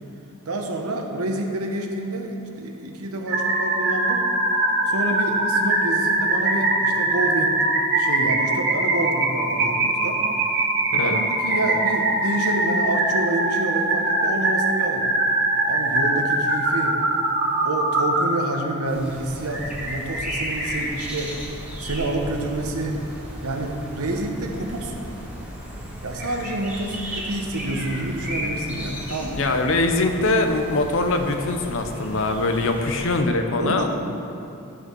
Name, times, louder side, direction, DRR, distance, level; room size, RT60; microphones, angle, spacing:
voice 1, 0.5-4.3 4.9-7.6 8.0-10.2 11.0-15.1 15.7-17.0 17.6-21.4 21.8-23.0 23.4-25.1 26.0-29.6 33.6-33.9, right 1 dB, 80° right, 3 dB, 1.0 m, -28 dB
sound 1, 3.3-18.2, right 2 dB, 50° right, 1.4 m, -22 dB
voice 2, 10.9-11.3 29.3-33.9, left 2 dB, 60° left, 5 dB, 0.7 m, -22 dB
sound 2, 18.9-33.2, equal, 5° right, 1.4 m, -34 dB
11.0 x 5.1 x 6.2 m, 2.7 s
head